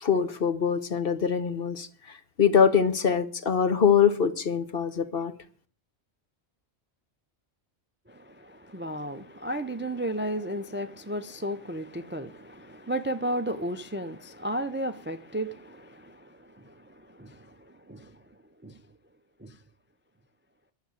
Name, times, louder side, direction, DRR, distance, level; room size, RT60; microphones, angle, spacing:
voice 1, 0.0-5.3, left 7 dB, 60° left, 1.3 m, -24 dB
voice 2, 8.1-18.2 18.6-18.8 19.4-19.6, right 1 dB, 15° right, 0.4 m, -34 dB
12.0 x 6.8 x 9.1 m
omnidirectional pair, 1.1 m